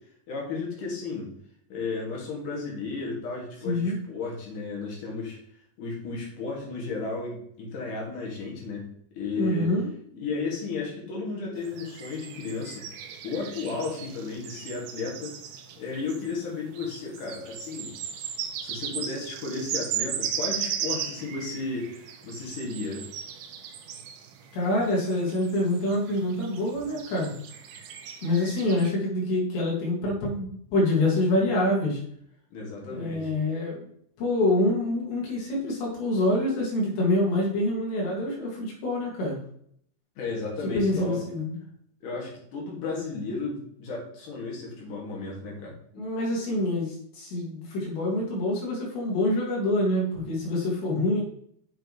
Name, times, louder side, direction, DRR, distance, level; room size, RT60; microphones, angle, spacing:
voice 1, 0.3-1.3 1.7-5.4 5.8-8.8 9.1-9.7 10.2-12.8 13.2-15.3 15.8-17.9 18.6-23.0 32.5-33.3 40.2-41.2 42.0-45.7, left 4 dB, 50° left, -2 dB, 3.3 m, -33 dB
voice 2, 9.3-9.9 24.5-27.3 28.2-32.0 32.9-33.8 34.2-39.4 40.6-41.6 45.9-51.2, left 1 dB, 75° left, -4 dB, 4.4 m, -26 dB
sound 1, 11.6-28.9, right 9 dB, 75° right, 2.4 m, -37 dB
8.1 x 6.4 x 3.2 m, 0.66 s
omnidirectional pair, 5.1 m